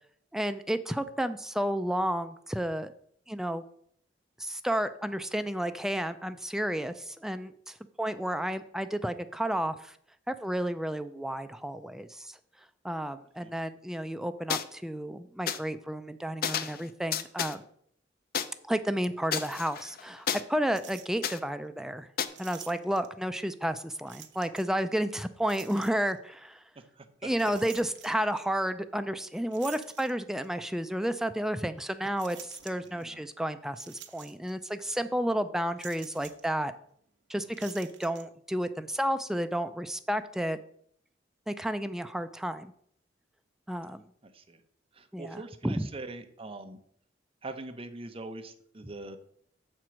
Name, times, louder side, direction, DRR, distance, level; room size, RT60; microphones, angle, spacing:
voice 1, 0.3-2.9 3.3-3.6 4.4-10.0 10.3-12.4 12.8-17.6 18.6-22.1 22.4-26.6 27.2-36.7 37.3-40.6 41.5-42.7 43.7-44.0 45.1-45.8, equal, 5° right, 10 dB, 0.3 m, -31 dB
sound 1, 14.5-14.6 15.5-15.6 16.4-16.8 17.1-17.5 18.3-18.4 19.3-20.4 21.2-21.4 22.2-22.3, left 7 dB, 55° left, 0.5 m, -31 dB
sound 2, 20.7-21.4 22.3-23.2 24.1-24.8 25.4-26.2 27.3-28.4 29.5-30.6 31.1-31.2 32.2-33.0 33.7-34.7 34.9-35.1 35.8-36.5 37.5-38.2, right 11 dB, 70° right, 0.8 m, -49 dB
voice 2, 26.7-27.3 32.8-33.3 44.2-44.6 44.9-46.8 47.4-49.2, right 2 dB, 30° right, 7 dB, 0.7 m, -43 dB
6.9 x 4.5 x 6.2 m, 0.65 s
head